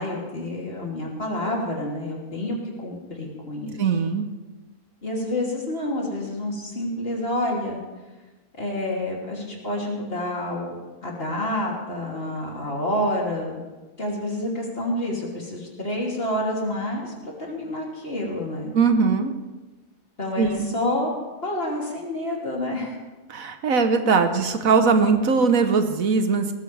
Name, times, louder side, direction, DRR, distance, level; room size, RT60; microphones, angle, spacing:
voice 1, 0.0-3.8 5.0-7.8 8.6-10.7 11.0-13.6 14.0-18.7 20.2-21.2 21.4-23.0, left 1 dB, 45° left, -2 dB, 3.2 m, -28 dB
voice 2, 3.8-4.3 18.7-19.3 20.4-20.7 23.3-26.5, right 5 dB, 75° right, 7 dB, 1.5 m, -20 dB
19.0 x 14.5 x 3.4 m, 1.2 s
omnidirectional pair, 1.4 m